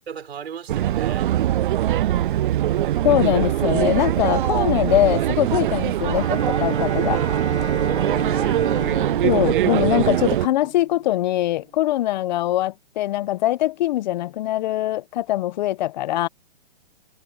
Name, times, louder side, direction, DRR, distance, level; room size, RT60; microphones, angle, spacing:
voice 1, 0.1-1.3 7.1-8.6, right 7 dB, 70° right, 5.9 m, -36 dB
sound 1, 0.7-10.5, right 12 dB, 55° right, 0.5 m, -22 dB
voice 2, 3.0-7.2 9.2-16.3, left 14 dB, 45° left, 1.2 m, -22 dB
Bowed string instrument, 6.0-11.0, right 6 dB, 90° right, 3.2 m, -28 dB
hypercardioid pair, 135°, 32 cm